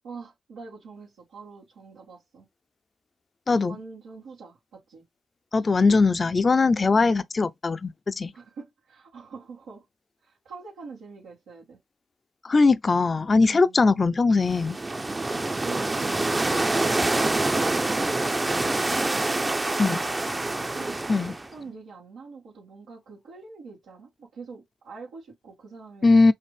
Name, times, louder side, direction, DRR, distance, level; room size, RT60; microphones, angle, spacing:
voice 1, 0.0-2.5 3.6-5.0 8.3-9.8 10.2-11.8 13.5-13.8 15.3-20.1 20.7-26.3, right 4 dB, 90° right, 2.1 m, -44 dB
voice 2, 5.5-8.3 12.4-14.8 19.8-20.0 21.1-21.3 26.0-26.3, left 3 dB, 40° left, 0.5 m, -20 dB
sound 1, 14.4-21.5, right 2 dB, 25° right, 0.7 m, -26 dB
5.5 x 2.6 x 3.4 m
supercardioid pair, 55°, 0 cm